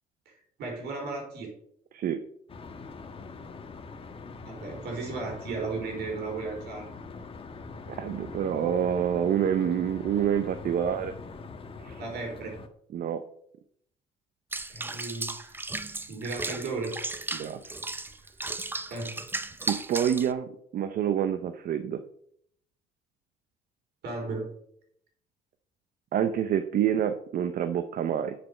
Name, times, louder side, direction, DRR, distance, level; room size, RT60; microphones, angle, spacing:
voice 1, 0.6-1.5 4.4-6.9 12.0-12.5 14.7-15.6 16.1-17.0 18.9-19.2 24.0-24.5, right 3 dB, 75° right, 1 dB, 4.6 m, -35 dB
sound 1, 2.5-12.7, left 4 dB, 35° left, 1.4 m, -43 dB
voice 2, 7.9-11.1 11.8-12.0 12.9-13.2 17.3-17.6 19.6-22.0 26.1-28.3, right 9 dB, 60° right, 9 dB, 0.8 m, -27 dB
Water / Bathtub (filling or washing), 14.5-20.3, right 2 dB, 10° right, 0.6 m, -35 dB
7.7 x 6.8 x 6.6 m, 0.68 s
cardioid pair, 110°, 17 cm